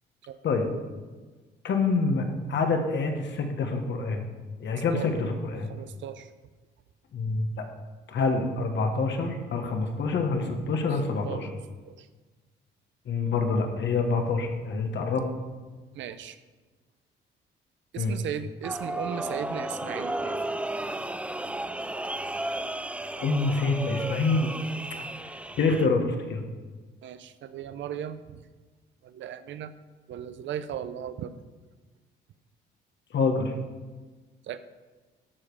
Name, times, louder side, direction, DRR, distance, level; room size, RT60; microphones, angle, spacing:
voice 1, 1.6-4.2 4.6-5.7 7.1-7.6 8.1-11.5 13.1-15.3 18.0-18.1 23.2-24.5 25.6-26.4 33.1-33.5, left 3 dB, 65° left, 4 dB, 1.5 m, -26 dB
voice 2, 5.7-6.3 10.9-11.0 11.3-11.5 11.9-12.1 15.9-16.4 17.9-20.4 24.9-25.1 27.0-28.4 29.0-29.7 30.1-31.3 34.5-34.6, right 9 dB, 70° right, 12 dB, 0.6 m, -37 dB
sound 1, 18.6-25.9, right 1 dB, 5° right, 0.4 m, -34 dB
13.5 x 5.0 x 4.9 m, 1.3 s
cardioid pair, 90°, 20 cm